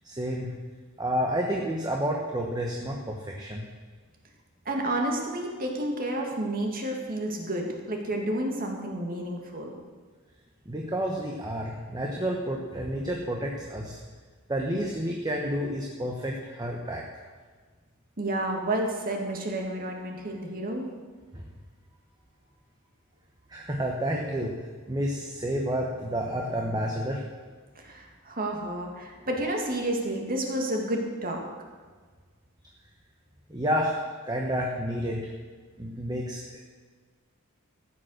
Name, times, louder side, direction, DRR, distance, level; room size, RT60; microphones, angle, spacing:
voice 1, 0.0-0.5 1.0-3.7 10.6-14.0 14.5-17.0 21.3-21.4 23.5-24.6 24.9-27.2 33.5-33.9 34.2-35.3 35.8-36.6, equal, 20° right, 0 dB, 1.2 m, -30 dB
voice 2, 4.7-9.7 18.2-20.9 27.8-31.4, right 1 dB, 40° right, 1 dB, 2.2 m, -30 dB
14.5 x 9.2 x 6.5 m, 1.5 s
head